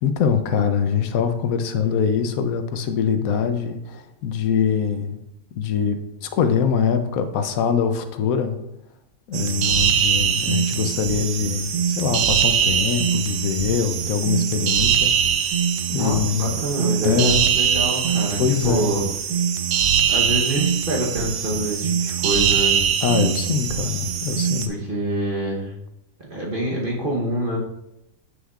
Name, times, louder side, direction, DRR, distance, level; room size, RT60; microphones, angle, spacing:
voice 1, 0.0-5.2 5.6-8.6 9.3-15.1 15.9-16.6 17.0-17.5 18.4-18.9 23.0-24.7, left 7 dB, 80° left, 9 dB, 1.1 m, -23 dB
sound 1, 9.3-24.7, right 8 dB, 75° right, 1.0 m, -22 dB
voice 2, 15.9-19.0 20.1-22.8 24.7-25.7 26.2-27.6, right 1 dB, 40° right, -3 dB, 1.1 m, -26 dB
8.0 x 6.2 x 2.4 m, 0.86 s
omnidirectional pair, 1.5 m